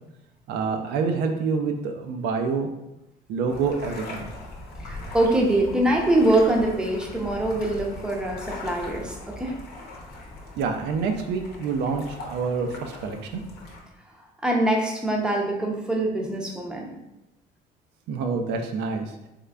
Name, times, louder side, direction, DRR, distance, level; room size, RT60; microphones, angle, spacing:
voice 1, 0.5-2.7 3.3-4.3 10.6-13.4 18.1-19.1, right 5 dB, 80° right, 5 dB, 0.4 m, -27 dB
sound 1, 3.5-13.8, left 2 dB, 70° left, 0.8 m, -40 dB
voice 2, 4.8-9.6 14.4-16.9, right 1 dB, 5° right, 0 dB, 0.6 m, -23 dB
3.6 x 3.2 x 2.2 m, 0.92 s
cardioid pair, 110°, 17 cm